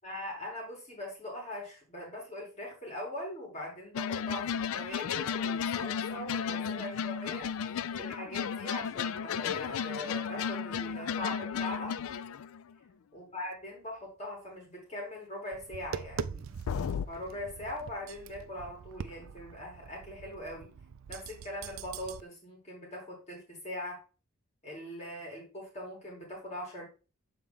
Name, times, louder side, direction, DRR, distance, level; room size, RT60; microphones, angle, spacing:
voice 1, 0.0-11.9 13.1-16.5 17.1-20.7 21.1-24.0 24.6-26.9, left 1 dB, 30° left, -2 dB, 2.8 m, -41 dB
sound 1, 3.9-12.7 16.7-17.1, left 7 dB, 85° left, 0.4 m, -34 dB
Tap, 15.5-22.2, right 6 dB, 80° right, 0.4 m, -43 dB
7.3 x 4.3 x 3.6 m, 0.33 s
head